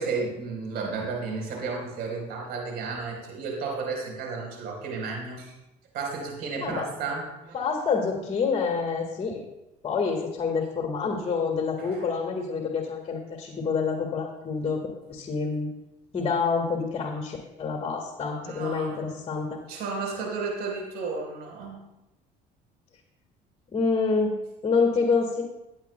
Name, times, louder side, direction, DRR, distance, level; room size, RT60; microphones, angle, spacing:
voice 1, 0.0-5.6 5.9-7.6 11.8-12.0 18.4-19.1 19.7-21.8, right 4 dB, 70° right, 0 dB, 4.2 m, -33 dB
voice 2, 7.5-9.4 9.8-14.8 15.1-15.7 16.1-19.6 23.7-25.4, left 5 dB, 35° left, 1 dB, 1.7 m, -27 dB
17.0 x 9.0 x 2.3 m, 0.95 s
supercardioid pair, 85°, 17 cm